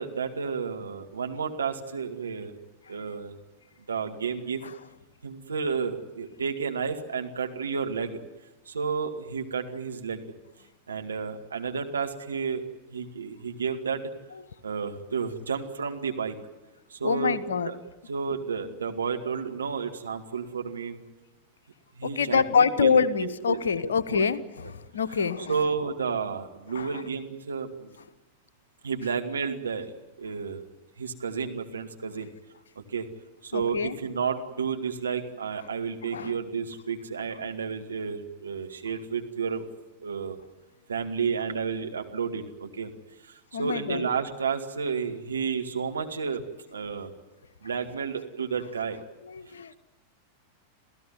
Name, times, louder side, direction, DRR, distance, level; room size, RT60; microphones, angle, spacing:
voice 1, 0.0-2.6 2.9-3.3 3.9-4.6 5.2-8.2 8.7-10.3 10.9-12.6 12.9-14.0 14.6-16.4 16.9-17.4 17.6-17.7 18.1-21.0 22.0-22.9 23.2-23.6 24.1-24.3 25.5-28.0 28.8-29.9 30.2-30.6 31.0-32.3 32.8-33.1 33.4-39.7 40.0-40.4 40.9-42.9 43.2-46.4 46.7-47.1 47.6-49.0, right 6 dB, 70° right, 4 dB, 2.1 m, -31 dB
voice 2, 17.0-17.7 22.0-25.6 26.7-27.0 33.5-34.0 36.1-36.4 43.5-44.1 49.3-49.7, left 6 dB, 70° left, 13 dB, 1.1 m, -26 dB
28.0 x 16.0 x 9.6 m, 1.1 s
figure-of-eight pair, 90°, 0 cm